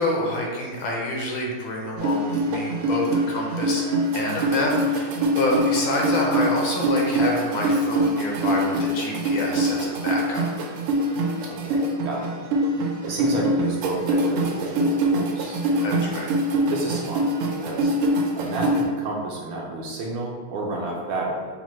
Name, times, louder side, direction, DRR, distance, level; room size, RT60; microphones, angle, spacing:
voice 1, 0.0-3.8 4.1-10.4 15.8-16.3, left 1 dB, 75° left, -1 dB, 1.3 m, -27 dB
sound 1, 2.0-18.8, right 1 dB, 90° right, 1.5 m, -24 dB
voice 2, 11.5-12.3 12.6-15.6 16.7-17.3 17.6-21.5, right 2 dB, 75° right, -2 dB, 1.2 m, -31 dB
5.8 x 2.1 x 3.1 m, 1.5 s
omnidirectional pair, 2.4 m